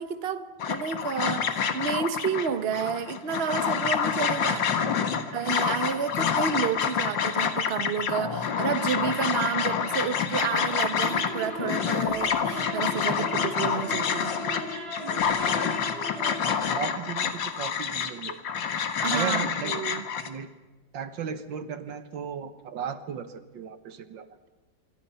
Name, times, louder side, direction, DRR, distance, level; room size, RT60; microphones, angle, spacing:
voice 1, 0.0-5.0 5.3-14.4 19.0-20.0, right 7 dB, 40° right, 1.2 m, -30 dB
sound 1, 0.6-20.3, left 7 dB, 85° left, 2.2 m, -28 dB
voice 2, 4.8-5.2 13.2-13.5 16.7-18.4 19.1-19.7 20.2-20.5 20.9-24.4, right 7 dB, 85° right, 2.0 m, -36 dB
sound 2, 11.0-16.5, equal, 70° right, 6.9 m, -37 dB
26.0 x 23.5 x 5.7 m
omnidirectional pair, 2.0 m